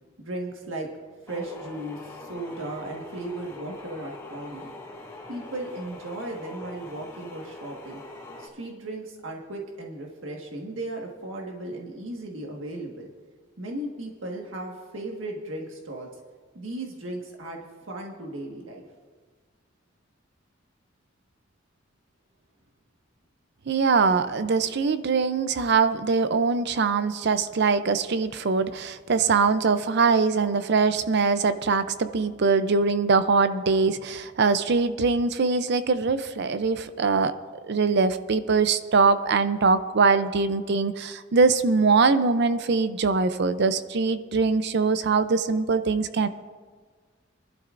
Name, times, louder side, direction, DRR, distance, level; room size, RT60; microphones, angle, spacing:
voice 1, 0.2-0.9 1.2-4.7 5.3-8.0 8.4-13.1 13.6-16.1 16.5-18.8, right 1 dB, 75° right, 0 dB, 1.6 m, -36 dB
sound 1, 1.3-8.5, left 2 dB, 15° left, 2.3 m, -43 dB
voice 2, 23.7-37.3 37.6-46.3, right 4 dB, 60° right, 12 dB, 0.5 m, -22 dB
23.0 x 12.0 x 2.5 m, 1.5 s
head